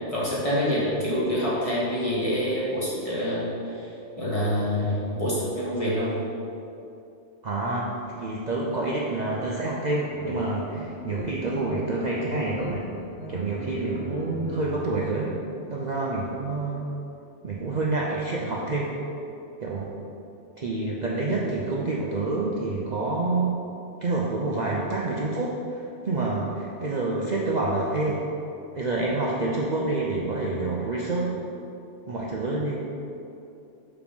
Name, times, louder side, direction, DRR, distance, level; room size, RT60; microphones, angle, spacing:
voice 1, 0.1-3.9 4.2-6.1, equal, 30° left, -7 dB, 1.7 m, -26 dB
voice 2, 7.4-12.8 13.3-15.3 15.7-16.9 17.4-18.9 19.6-19.9 20.6-23.5 24.0-28.2 28.7-31.4 32.1-32.8, right 2 dB, 45° right, -4 dB, 0.7 m, -27 dB
sound 1, 10.1-10.3 10.7-11.8 12.1-12.8 13.0-14.9, left 1 dB, 85° left, 1.9 m, -37 dB
6.3 x 5.1 x 5.2 m, 2.8 s
omnidirectional pair, 1.2 m